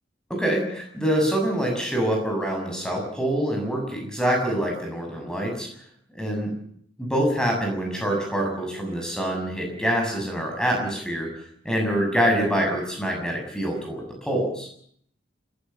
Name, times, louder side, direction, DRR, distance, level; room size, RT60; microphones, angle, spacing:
voice 1, 0.3-5.7 6.1-6.5 7.0-11.3 11.6-14.7, equal, 5° left, 1 dB, 7.3 m, -25 dB
29.5 x 14.5 x 7.2 m, 0.64 s
head